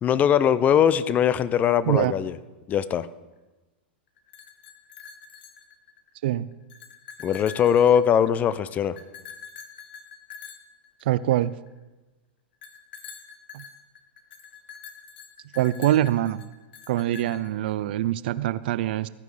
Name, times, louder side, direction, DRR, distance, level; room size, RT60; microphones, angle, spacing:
voice 1, 0.0-2.4 2.7-3.1 7.2-9.0, left 9 dB, 25° left, 16 dB, 0.5 m, -21 dB
sound 1, 4.2-6.1 6.5-8.5 9.0-11.7 12.6-17.7, left 6 dB, 75° left, 1.2 m, -45 dB
voice 2, 11.1-11.5 13.5-13.6 15.5-16.4 16.9-19.1, right 13 dB, 65° right, 17 dB, 0.4 m, -24 dB
14.5 x 9.2 x 3.3 m, 1.1 s
hypercardioid pair, 120°, 6 cm